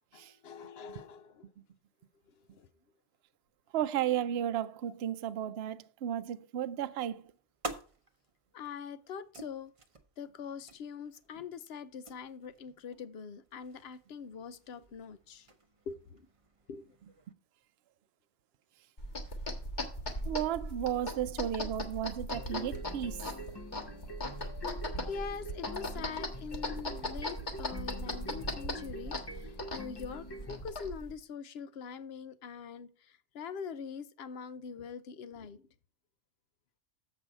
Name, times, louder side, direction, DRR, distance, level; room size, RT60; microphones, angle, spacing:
voice 1, 0.1-1.5 2.5-2.7 8.5-9.7 10.2-15.5 15.9-16.3 16.7-16.9 24.7-35.7, left 6 dB, 60° left, 0.9 m, -43 dB
voice 2, 3.7-7.2 20.3-23.2, right 10 dB, 65° right, 0.8 m, -34 dB
sound 1, 6.9-17.3, right 2 dB, 30° right, 0.8 m, -50 dB
sound 2, 19.0-31.1, left 1 dB, 40° left, 1.6 m, -38 dB
sound 3, 22.3-30.6, left 1 dB, 25° left, 0.7 m, -46 dB
7.4 x 5.4 x 6.3 m
omnidirectional pair, 1.2 m